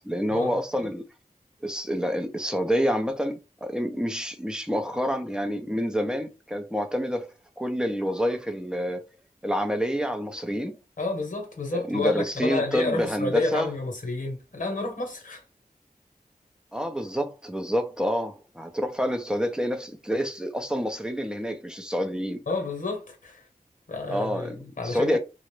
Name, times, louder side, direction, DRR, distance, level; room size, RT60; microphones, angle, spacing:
voice 1, 0.0-1.0 1.6-7.3 7.6-9.0 9.4-10.8 11.7-13.7 16.7-22.4 24.1-24.6 24.8-25.2, equal, 5° right, 0.5 m, -28 dB
voice 2, 11.0-15.4 22.5-23.5 23.9-25.2, left 3 dB, 65° left, 0.9 m, -30 dB
2.5 x 2.0 x 3.0 m
wide cardioid pair, 60°, 15 cm